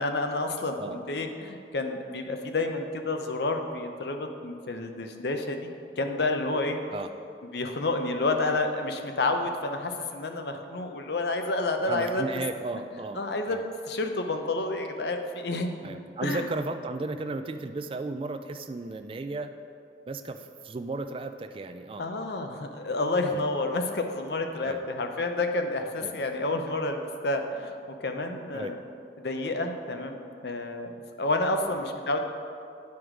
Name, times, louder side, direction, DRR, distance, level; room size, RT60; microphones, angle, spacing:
voice 1, 0.0-5.7 6.0-6.8 7.5-12.2 13.2-13.6 13.9-16.0 16.2-16.4 22.0-27.7 28.0-28.8 29.2-30.2 30.4-30.9 31.2-32.2, left 2 dB, 70° left, 5 dB, 0.7 m, -29 dB
voice 2, 11.9-13.2 13.5-13.6 15.8-19.5 20.1-22.1 23.3-23.5 24.6-24.8 26.0-26.1 28.5-28.7 31.7-31.8, right 3 dB, 30° right, 8 dB, 0.3 m, -35 dB
9.4 x 4.8 x 4.9 m, 2.4 s
head